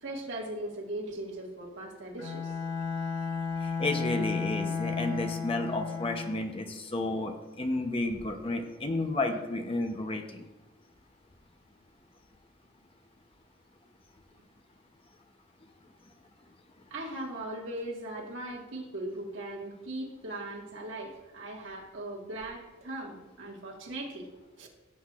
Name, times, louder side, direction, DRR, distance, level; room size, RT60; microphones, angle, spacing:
voice 1, 0.0-2.6 16.9-24.3 24.6-24.7, right 1 dB, 65° right, 0 dB, 1.8 m, -39 dB
Bowed string instrument, 2.2-6.5, left 5 dB, 60° left, 1.6 m, -33 dB
voice 2, 3.6-10.4, left 2 dB, 25° left, 5 dB, 0.7 m, -32 dB
15.5 x 7.9 x 2.5 m, 1.1 s
head